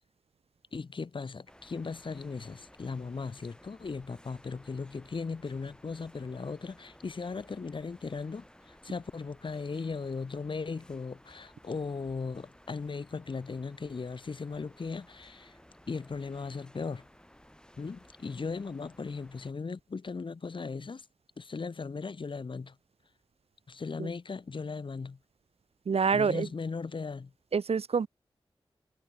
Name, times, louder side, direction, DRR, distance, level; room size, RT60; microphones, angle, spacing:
voice 1, 0.7-15.5 15.9-17.1 17.8-21.0 21.4-22.8 23.7-25.2 26.1-27.3, left 4 dB, 55° left, 0.8 m, -37 dB
sound 1, 1.5-19.5, left 1 dB, 10° left, 5.2 m, -57 dB
voice 2, 25.9-26.5 27.5-28.1, right 5 dB, 85° right, 1.2 m, -26 dB
wide cardioid pair, 75°, 10 cm